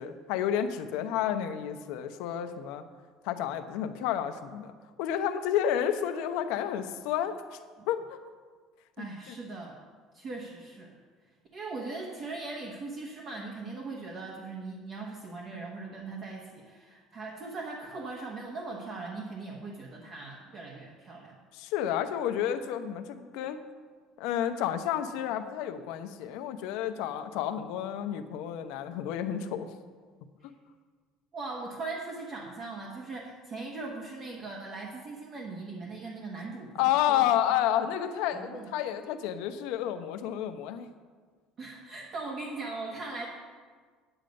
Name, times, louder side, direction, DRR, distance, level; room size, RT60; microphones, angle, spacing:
voice 1, 0.0-2.8 3.2-4.7 5.0-7.6 7.9-8.2 9.0-9.3 21.5-23.6 24.2-29.7 36.7-40.9, left 10 dB, 75° left, 8 dB, 0.8 m, -30 dB
voice 2, 9.0-9.8 10.1-10.9 11.5-21.4 30.4-30.5 31.3-36.7 37.1-37.3 38.3-38.7 41.6-43.3, right 3 dB, 35° right, -1 dB, 1.2 m, -39 dB
9.2 x 8.9 x 5.2 m, 1.5 s
cardioid pair, 160°, 0 cm